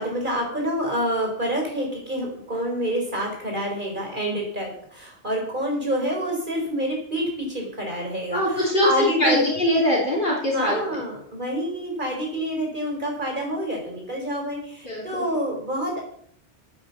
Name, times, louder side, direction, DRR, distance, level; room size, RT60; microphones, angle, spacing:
voice 1, 0.0-9.4 10.5-16.0, equal, 40° right, 0 dB, 4.7 m, -27 dB
voice 2, 8.3-10.8 14.8-15.3, left 1 dB, 45° left, -3 dB, 3.4 m, -22 dB
10.0 x 8.8 x 7.2 m, 0.64 s
omnidirectional pair, 1.2 m